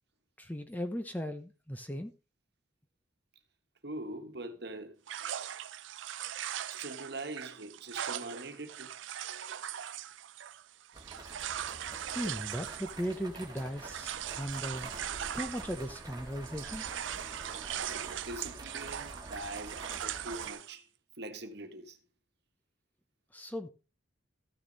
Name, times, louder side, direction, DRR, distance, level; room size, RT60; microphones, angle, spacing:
voice 1, 0.4-2.1 12.1-14.9 15.3-16.9 23.3-23.7, equal, 10° left, 0.8 m, -37 dB
voice 2, 3.8-5.0 6.7-8.9 17.8-20.9 21.2-22.0, right 2 dB, 55° right, 1.5 m, -43 dB
sound 1, 5.1-16.2 16.4-20.7, right 10 dB, 70° right, 0.5 m, -40 dB
sound 2, 10.9-20.5, right 2 dB, 20° right, 1.8 m, -47 dB
14.0 x 6.6 x 4.0 m
head